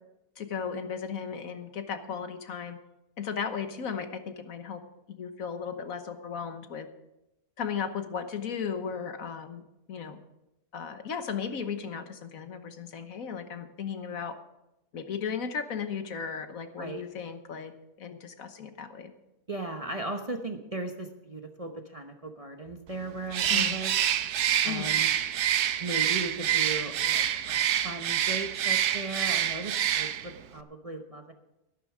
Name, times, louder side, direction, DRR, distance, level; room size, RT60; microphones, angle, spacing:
voice 1, 0.4-2.8 3.2-4.8 5.1-6.9 7.6-9.6 9.9-10.2 10.7-14.3 14.9-17.7 18.0-19.1 23.5-23.8 24.6-24.9, left 6 dB, 65° left, 8 dB, 1.5 m, -35 dB
voice 2, 19.5-23.9 24.6-25.1 25.8-31.3, right 2 dB, 30° right, 4 dB, 0.9 m, -37 dB
Bird, 23.3-30.4, right 10 dB, 90° right, 1.3 m, -27 dB
12.5 x 12.0 x 4.9 m, 0.91 s
omnidirectional pair, 1.6 m